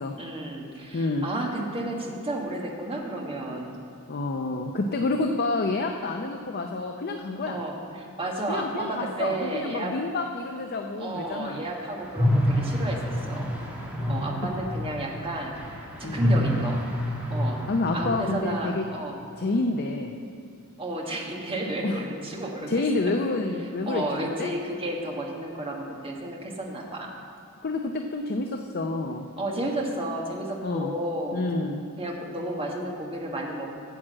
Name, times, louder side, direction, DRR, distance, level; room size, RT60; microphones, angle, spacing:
voice 1, 0.2-3.8 7.4-10.0 11.0-13.0 13.3-13.5 14.1-15.5 16.0-16.8 17.3-17.6 17.9-19.1 20.8-22.7 23.9-27.1 29.4-31.4 32.0-33.7, right 1 dB, 25° right, 0 dB, 1.4 m, -32 dB
voice 2, 0.9-1.3 4.1-7.6 8.5-11.6 16.0-16.3 17.7-18.8 19.4-20.1 21.8-22.0 22.7-24.5 27.6-29.3 30.6-30.9 31.3-31.8, left 2 dB, 45° left, 4 dB, 0.6 m, -28 dB
sound 1, 12.1-18.4, left 1 dB, 5° right, 1.4 m, -27 dB
9.3 x 7.5 x 7.5 m, 2.4 s
head